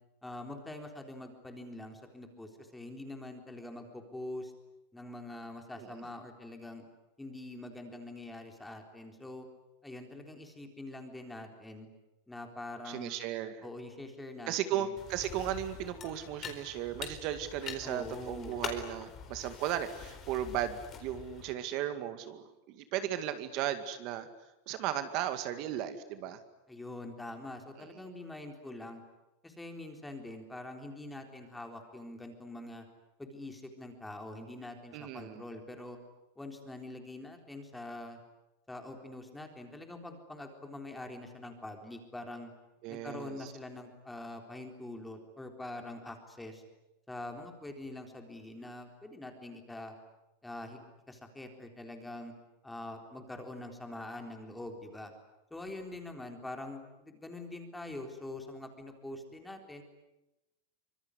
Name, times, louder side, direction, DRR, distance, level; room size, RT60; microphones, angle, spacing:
voice 1, 0.2-4.5 4.9-6.9 7.2-9.5 9.8-11.9 12.3-13.1 13.6-14.9 17.8-18.6 26.7-29.0 29.4-32.9 33.2-36.0 36.4-38.2 38.7-42.5 42.9-46.6 47.1-50.0 50.4-50.8 51.1-52.3 52.6-55.1 55.5-59.8, left 2 dB, 5° left, 4 dB, 3.8 m, -44 dB
voice 2, 12.9-13.6 14.5-24.3 24.7-26.4 27.8-28.0 34.9-35.4 42.8-43.5, right 11 dB, 45° right, 10 dB, 2.1 m, -36 dB
sound 1, 15.0-21.5, left 7 dB, 25° left, 4.4 m, -44 dB
25.5 x 23.0 x 9.8 m, 0.95 s
supercardioid pair, 155°, 0 cm